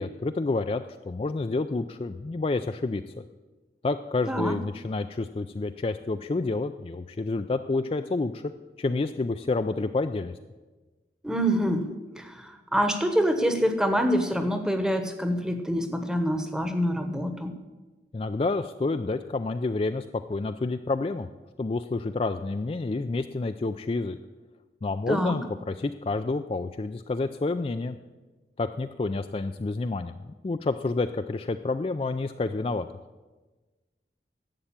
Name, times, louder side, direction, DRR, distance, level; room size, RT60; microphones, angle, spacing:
voice 1, 0.0-3.0 3.8-8.5 8.8-10.4 18.1-21.3 21.6-24.2 24.8-28.0 28.6-32.9, left 3 dB, 30° left, 8 dB, 0.3 m, -29 dB
voice 2, 11.2-11.9 12.1-17.5 25.1-25.4, equal, 5° right, 7 dB, 1.0 m, -26 dB
11.5 x 7.9 x 8.7 m, 1.2 s
head